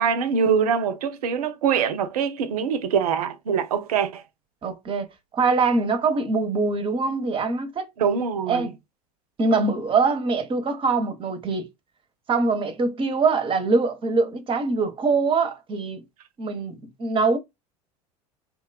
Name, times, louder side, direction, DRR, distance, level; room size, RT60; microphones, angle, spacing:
voice 1, 0.0-4.2 8.0-8.7, right 7 dB, 70° right, 0.5 m, -23 dB
voice 2, 4.6-5.1 5.3-7.8 8.5-8.7 9.4-11.7 12.3-16.0 16.4-17.4, right 4 dB, 25° right, 0.7 m, -23 dB
2.9 x 2.2 x 2.2 m
figure-of-eight pair, 75°, 20 cm